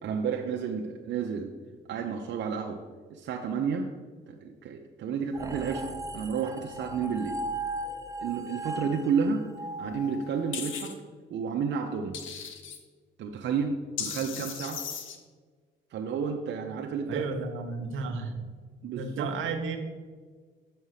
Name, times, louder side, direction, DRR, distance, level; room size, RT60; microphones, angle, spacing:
voice 1, 0.0-1.5 1.9-2.8 3.1-3.9 4.3-7.4 8.2-9.4 9.8-11.0 11.3-12.1 13.2-14.8 15.9-17.2 18.8-19.3, right 6 dB, 65° right, 2 dB, 0.7 m, -31 dB
sound 1, 5.3-10.8, right 1 dB, 15° right, 0.6 m, -37 dB
sound 2, 10.5-10.9 12.1-12.8 14.0-15.2, left 7 dB, 80° left, 1.0 m, -36 dB
voice 2, 17.1-18.4 18.9-19.8, right 4 dB, 85° right, 6 dB, 1.0 m, -33 dB
6.6 x 5.5 x 6.4 m, 1.5 s
cardioid pair, 90°, 20 cm